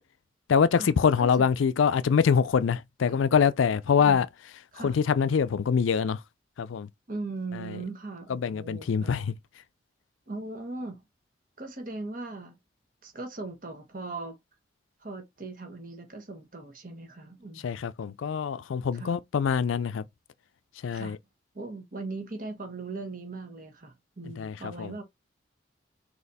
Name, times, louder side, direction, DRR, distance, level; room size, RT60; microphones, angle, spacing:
voice 1, 0.5-4.3 4.8-6.2 6.6-6.9 7.6-7.7 8.3-9.3 17.6-20.0 20.8-21.2 24.4-24.9, left 6 dB, 90° left, 0.4 m, -24 dB
voice 2, 7.1-9.1 10.3-11.0 11.6-12.6 13.0-14.4 15.0-17.8 18.9-19.1 20.9-21.2 21.5-25.0, right 3 dB, 45° right, 1.2 m, -39 dB
4.1 x 2.9 x 4.0 m
head